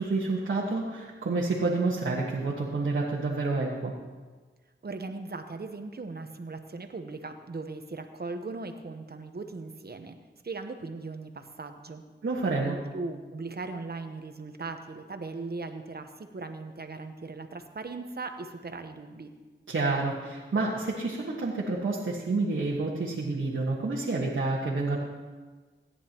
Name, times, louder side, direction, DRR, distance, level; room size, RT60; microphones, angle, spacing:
voice 1, 0.0-3.9 12.2-12.8 19.7-25.0, right 3 dB, 80° right, -5 dB, 1.5 m, -29 dB
voice 2, 4.8-10.2 10.4-12.0 12.6-19.3, right 3 dB, 50° right, 7 dB, 1.0 m, -38 dB
17.5 x 9.8 x 3.0 m, 1.3 s
cardioid pair, 55°, 20 cm